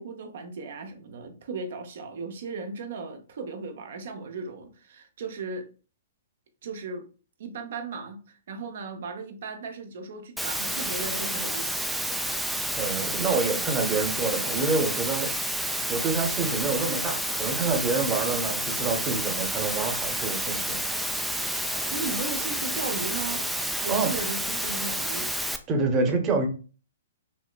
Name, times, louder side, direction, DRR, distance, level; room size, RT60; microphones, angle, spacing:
voice 1, 0.0-5.7 6.6-7.1 7.4-11.9 21.6-23.4 23.8-25.3, right 3 dB, 55° right, 0.7 m, -36 dB
Water, 10.4-25.6, right 1 dB, ahead, 0.4 m, -30 dB
voice 2, 12.8-15.3 15.9-20.8 23.9-24.1 25.7-26.5, right 4 dB, 25° right, 0.9 m, -27 dB
5.4 x 2.9 x 2.4 m
figure-of-eight pair, 115°, 0 cm